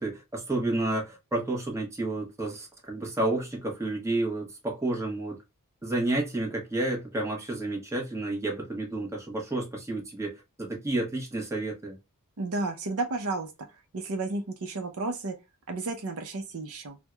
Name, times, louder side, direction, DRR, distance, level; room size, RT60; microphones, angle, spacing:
voice 1, 0.0-5.4 5.8-12.0, right 2 dB, 15° right, 1.0 m, -30 dB
voice 2, 12.4-13.5 13.9-15.3 15.7-17.0, right 2 dB, 65° right, 0.6 m, -32 dB
4.4 x 2.1 x 2.3 m
head